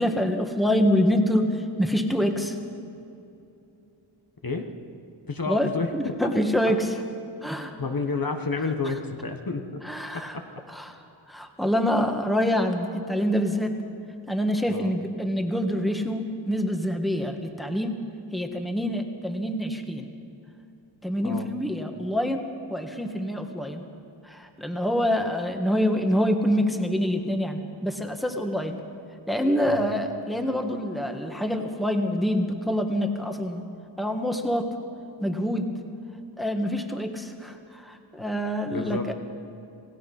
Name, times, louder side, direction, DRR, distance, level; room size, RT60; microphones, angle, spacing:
voice 1, 0.0-2.5 5.5-6.9 7.4-7.7 9.8-10.3 10.7-10.9 11.3-13.8 14.3-18.0 18.3-20.1 21.0-22.4 22.7-23.8 24.3-28.8 29.3-33.6 34.0-34.7 35.2-35.7 36.4-39.1, equal, ahead, 4 dB, 1.7 m, -26 dB
voice 2, 5.3-5.9 7.8-9.8 10.1-10.4 14.7-14.9 21.2-21.5 29.6-29.9 38.7-39.1, left 4 dB, 45° left, 4 dB, 1.5 m, -30 dB
27.5 x 17.0 x 5.5 m, 2.8 s
wide cardioid pair, 80°, 48 cm